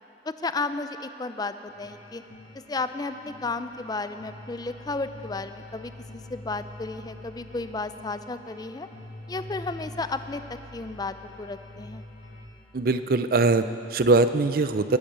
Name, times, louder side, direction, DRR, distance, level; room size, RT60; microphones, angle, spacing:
voice 1, 0.3-2.2 2.7-8.9 9.3-12.0, left 3 dB, 20° left, 10 dB, 0.5 m, -33 dB
sound 1, 1.7-12.5, left 1 dB, 75° left, 2.4 m, -45 dB
voice 2, 12.7-15.0, right 3 dB, 55° right, 11 dB, 0.5 m, -22 dB
20.0 x 8.8 x 6.8 m, 2.9 s
head